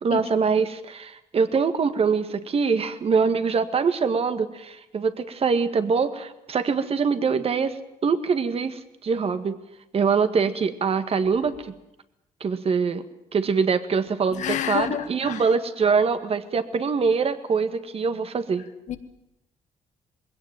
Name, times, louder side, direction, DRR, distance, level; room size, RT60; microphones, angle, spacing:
voice 1, 0.0-9.6 9.9-11.7 12.4-13.0 13.3-18.7, right 5 dB, 50° right, 10 dB, 1.9 m, -24 dB
voice 2, 14.3-15.4 18.9-19.0, left 9 dB, 70° left, 10 dB, 1.8 m, -28 dB
21.0 x 17.0 x 9.3 m, 0.88 s
supercardioid pair, 60°, 13 cm